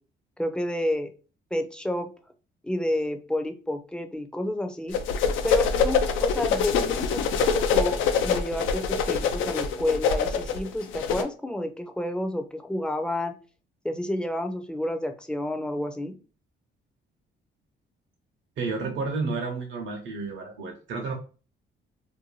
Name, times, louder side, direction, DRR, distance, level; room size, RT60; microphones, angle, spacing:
voice 1, 0.4-1.1 1.5-2.1 2.6-5.0 5.4-13.3 13.8-16.1, left 1 dB, 5° left, 5 dB, 0.4 m, -30 dB
sound 1, 4.9-11.2, left 6 dB, 90° left, 0.4 m, -25 dB
voice 2, 18.6-21.1, right 4 dB, 70° right, 0 dB, 0.7 m, -31 dB
2.6 x 2.2 x 3.0 m, 0.36 s
cardioid pair, 90°, 20 cm